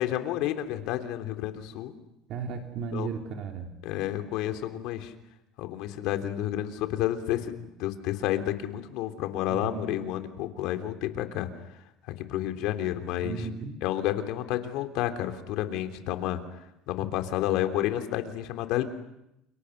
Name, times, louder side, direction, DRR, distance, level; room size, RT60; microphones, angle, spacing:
voice 1, 0.0-1.9 2.9-3.1 3.8-5.1 5.6-11.5 12.2-13.5 13.8-16.4 16.9-18.8, left 12 dB, 70° left, 7 dB, 3.3 m, -30 dB
voice 2, 2.3-3.7 9.5-9.9 13.2-13.7, right 6 dB, 50° right, 3 dB, 3.4 m, -35 dB
29.5 x 29.5 x 6.6 m, 0.84 s
cardioid pair, 135°, 0 cm